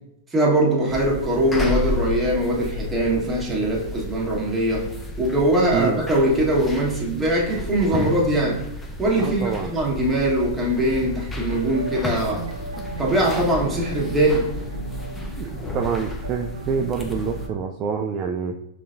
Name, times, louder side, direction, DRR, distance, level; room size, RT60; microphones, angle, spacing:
voice 1, 0.3-4.9 5.2-8.6 9.0-12.4 13.0-14.5, right 1 dB, 10° right, -4 dB, 1.4 m, -21 dB
sound 1, 0.9-17.5, left 1 dB, 15° left, 0.6 m, -32 dB
voice 2, 5.7-6.0 9.2-9.7 15.4-18.5, right 6 dB, 35° right, 3 dB, 0.3 m, -26 dB
sound 2, 11.4-17.7, right 3 dB, 85° right, 0.6 m, -36 dB
5.4 x 3.3 x 2.6 m, 0.85 s
hypercardioid pair, 110°, 0 cm